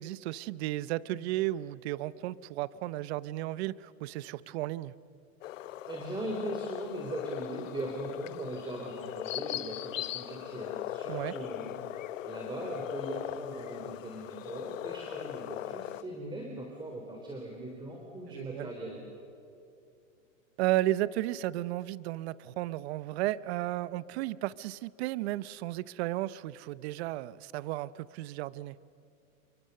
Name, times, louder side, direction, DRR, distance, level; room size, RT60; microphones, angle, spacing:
voice 1, 0.0-4.9 11.1-11.3 18.3-18.7 20.6-28.8, right 16 dB, 50° right, 19 dB, 0.7 m, -34 dB
sound 1, 5.4-16.0, left 13 dB, 70° left, 1.1 m, -39 dB
voice 2, 5.9-11.8 12.2-19.0, right 1 dB, 10° right, 1 dB, 3.6 m, -40 dB
29.0 x 23.5 x 6.8 m, 2.6 s
hypercardioid pair, 130°, 40 cm